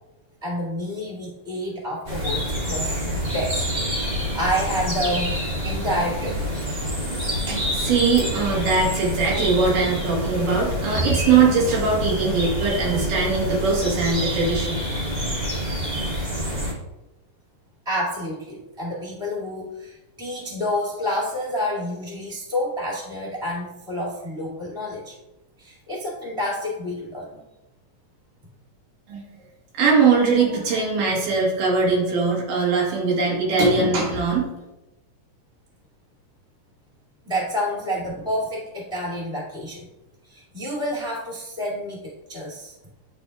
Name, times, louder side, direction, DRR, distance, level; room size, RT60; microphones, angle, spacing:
voice 1, 0.4-5.3 5.6-6.4 17.8-25.1 25.6-27.4 37.2-39.9 40.2-42.7, equal, ahead, -5 dB, 1.5 m, -29 dB
sound 1, 2.0-16.7, equal, 20° right, 1.2 m, -27 dB
voice 2, 7.5-14.8 29.1-29.2 29.7-34.5, right 4 dB, 90° right, -3 dB, 3.0 m, -21 dB
10.5 x 4.3 x 2.3 m, 0.99 s
omnidirectional pair, 3.6 m